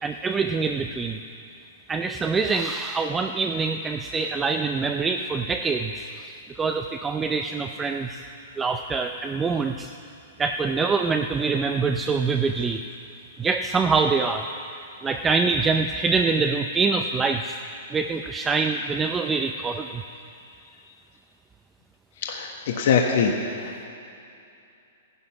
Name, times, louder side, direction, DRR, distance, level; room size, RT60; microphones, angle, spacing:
voice 1, 0.0-1.2 1.9-8.2 8.6-9.9 10.4-12.8 13.4-14.5 15.0-17.6 17.9-20.0, right 4 dB, 15° right, 5 dB, 0.4 m, -25 dB
voice 2, 22.3-23.3 23.6-23.8, left 6 dB, 60° left, 1 dB, 1.3 m, -23 dB
14.0 x 11.0 x 6.0 m, 2.6 s
hypercardioid pair, 140°, 0 cm